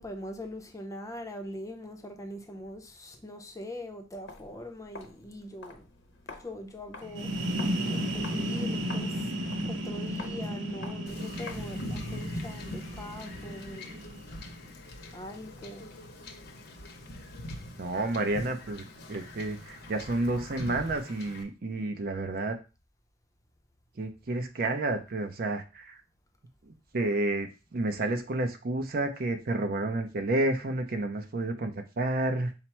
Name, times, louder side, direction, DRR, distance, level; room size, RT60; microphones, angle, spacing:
voice 1, 0.0-5.9 6.4-7.3 7.9-9.3 9.6-14.0 15.1-15.9, left 1 dB, 15° left, 0.5 m, -42 dB
Walk footsteps, 4.2-11.9, left 3 dB, 85° left, 0.9 m, -49 dB
sound 1, 7.0-14.6, equal, 80° right, 0.8 m, -34 dB
Wind / Ocean / Boat Water vehicle, 11.1-21.4, left 1 dB, 55° left, 0.7 m, -42 dB
voice 2, 17.8-22.6 24.0-26.0 26.7-32.5, right 2 dB, 50° right, 0.6 m, -30 dB
5.7 x 2.0 x 4.4 m
head